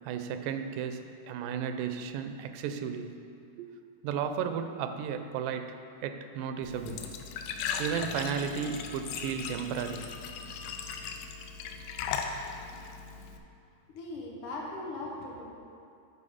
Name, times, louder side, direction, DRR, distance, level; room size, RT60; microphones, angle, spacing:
voice 1, 0.0-3.1 3.6-3.7 4.0-5.7 6.0-7.0 7.8-10.1, right 7 dB, 85° right, 8 dB, 2.2 m, -34 dB
Glass / Trickle dribble / Fill (with liquid), 6.6-13.4, left 6 dB, 85° left, 2.2 m, -38 dB
voice 2, 13.9-15.5, left 2 dB, 70° left, -3 dB, 2.5 m, -39 dB
9.9 x 4.9 x 4.9 m, 2.5 s
omnidirectional pair, 3.7 m